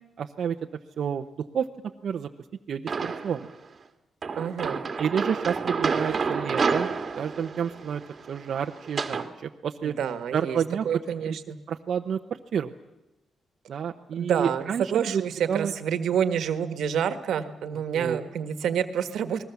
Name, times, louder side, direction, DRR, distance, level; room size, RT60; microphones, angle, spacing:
voice 1, 0.2-0.6 1.0-1.7 2.0-2.3 2.7-3.5 5.0-6.9 7.2-8.0 8.3-10.0 10.3-10.8 11.7-12.7 13.7-15.2 15.5-15.7 17.9-18.2, right 7 dB, 60° right, 3 dB, 0.9 m, -29 dB
sound 1, 2.9-3.5 4.2-9.3, right 5 dB, 40° right, 1.8 m, -29 dB
voice 2, 4.4-4.8 9.8-10.6 10.8-11.6 14.2-19.4, right 8 dB, 80° right, 10 dB, 1.6 m, -28 dB
29.5 x 20.0 x 7.1 m, 0.95 s
cardioid pair, 130°, 0 cm